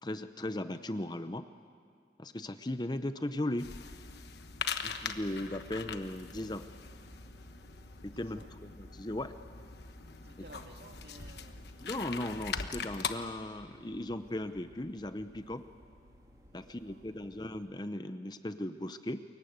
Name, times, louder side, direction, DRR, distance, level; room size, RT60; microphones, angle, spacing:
voice 1, 0.0-1.5 2.2-3.7 4.8-6.7 8.0-9.3 11.8-15.6 16.5-19.2, left 1 dB, 25° left, 10 dB, 0.8 m, -37 dB
sound 1, 3.6-13.1, left 6 dB, 70° left, 1.2 m, -41 dB
sound 2, 5.3-17.7, equal, 20° right, 2.8 m, -59 dB
voice 2, 8.1-8.5 10.2-11.7 16.5-17.0, right 2 dB, 65° right, 4 dB, 2.2 m, -55 dB
29.0 x 22.0 x 8.1 m, 2.2 s
head